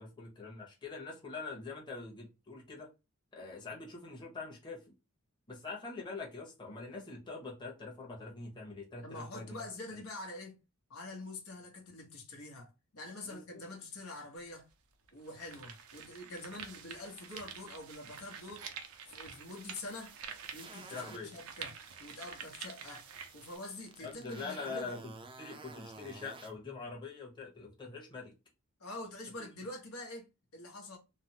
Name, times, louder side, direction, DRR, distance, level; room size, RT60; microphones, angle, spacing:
voice 1, 0.0-2.9 3.3-4.8 5.5-9.6 13.2-13.6 20.9-21.3 24.0-25.0 25.4-28.3 29.4-29.5, left 4 dB, 20° left, 0.9 m, -44 dB
voice 2, 9.0-10.6 10.9-14.7 15.1-18.7 19.1-20.1 20.5-23.1 23.3-24.9 28.8-30.3 30.5-31.0, left 2 dB, 75° left, 1.0 m, -46 dB
sound 1, 14.4-14.5 15.1-23.6, right 7 dB, 75° right, 0.5 m, -48 dB
sound 2, 19.2-21.4 21.8-26.5, right 3 dB, 25° right, 0.4 m, -53 dB
3.2 x 2.0 x 2.7 m
head